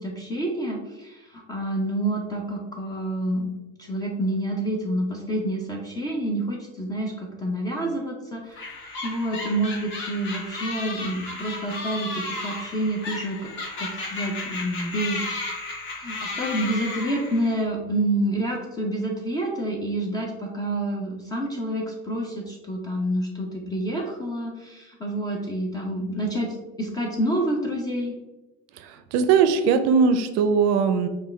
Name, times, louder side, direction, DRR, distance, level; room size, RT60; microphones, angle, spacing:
voice 1, 0.0-3.5 3.8-8.7 9.0-13.5 13.8-15.4 16.0-26.5 26.8-28.1, right 1 dB, 15° left, 0 dB, 0.4 m, -28 dB
sound 1, 8.6-17.6, left 2 dB, 40° left, 1.1 m, -34 dB
voice 2, 28.8-31.1, right 6 dB, 55° right, 9 dB, 0.5 m, -20 dB
5.6 x 2.3 x 3.1 m, 1.1 s
cardioid pair, 150°, 31 cm